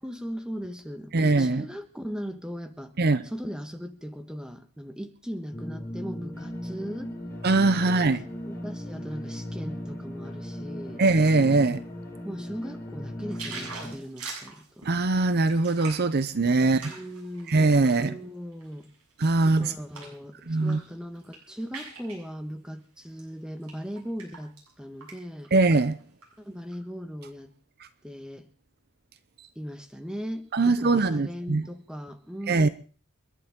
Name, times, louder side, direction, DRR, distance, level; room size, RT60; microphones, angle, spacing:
voice 1, 0.0-2.9 3.2-7.1 7.7-8.0 8.5-11.0 12.2-14.9 16.6-17.6 18.0-18.9 19.4-25.5 26.4-27.5 28.0-28.5 29.5-32.7, equal, 5° right, 1.4 m, -38 dB
voice 2, 1.1-1.6 3.0-3.2 7.4-8.2 11.0-11.8 14.8-16.9 17.5-18.2 19.2-19.7 20.5-20.8 25.5-26.0 30.5-31.6 32.5-32.7, right 3 dB, 45° right, 0.7 m, -22 dB
sound 1, 5.5-13.9, left 1 dB, 10° left, 5.6 m, -37 dB
sound 2, 13.3-18.0 18.5-20.2 20.6-20.9 21.2-22.2 23.0-23.2 23.6-24.7 25.0-25.2 25.4-26.3 26.7-26.8, right 4 dB, 85° right, 7.8 m, -42 dB
29.5 x 11.5 x 3.7 m
head